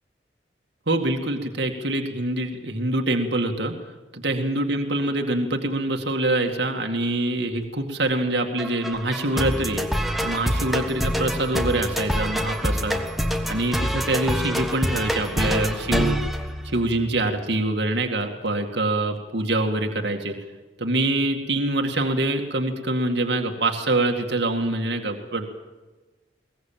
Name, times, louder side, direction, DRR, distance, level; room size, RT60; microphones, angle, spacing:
voice 1, 0.9-3.7 4.1-9.8 10.2-13.0 13.5-16.2 16.6-20.3 20.8-25.5, right 2 dB, 65° right, 3 dB, 2.2 m, -25 dB
sound 1, 8.6-17.2, equal, ahead, 1.4 m, -26 dB
22.5 x 19.0 x 7.5 m, 1.2 s
head